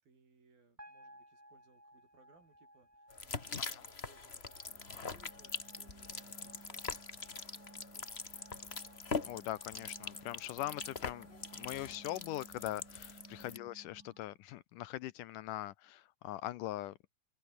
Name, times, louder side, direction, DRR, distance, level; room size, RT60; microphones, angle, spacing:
voice 1, 0.0-9.1 13.4-13.8, right 4 dB, 75° right, 8.7 m, -68 dB
sound 1, 0.8-13.1, equal, 5° right, 7.6 m, -62 dB
sound 2, 3.1-13.6, left 4 dB, 45° left, 0.7 m, -43 dB
sound 3, 4.7-14.4, right 3 dB, 30° right, 5.6 m, -59 dB
voice 2, 9.3-11.3 11.5-17.1, left 15 dB, 75° left, 2.0 m, -41 dB
omnidirectional pair, 4.2 m